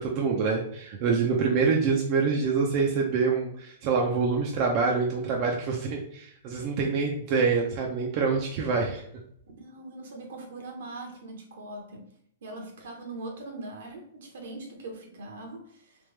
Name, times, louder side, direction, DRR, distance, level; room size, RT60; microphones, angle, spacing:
voice 1, 0.0-9.0, right 5 dB, 45° right, 0 dB, 0.6 m, -26 dB
voice 2, 9.6-12.0 12.4-16.0, right 2 dB, 75° right, 2 dB, 1.2 m, -41 dB
3.4 x 3.0 x 3.3 m, 0.68 s
hypercardioid pair, 130°, 0 cm